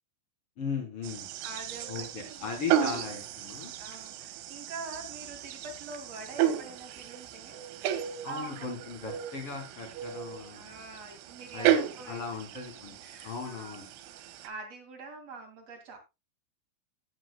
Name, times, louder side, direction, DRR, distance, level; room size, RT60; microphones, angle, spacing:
voice 1, 0.6-1.3 1.9-3.7 8.2-10.7 11.5-11.8 12.1-12.9 13.2-13.9, left 5 dB, 30° left, 3 dB, 3.6 m, -38 dB
sound 1, 1.0-14.5, right 10 dB, 85° right, 3.6 m, -34 dB
voice 2, 1.4-2.5 3.8-7.6 8.3-8.7 10.5-12.2 12.5-12.6 13.0-13.8 14.1-16.0, right 3 dB, 45° right, 2 dB, 2.5 m, -44 dB
16.5 x 8.2 x 2.2 m, 0.25 s
omnidirectional pair, 5.4 m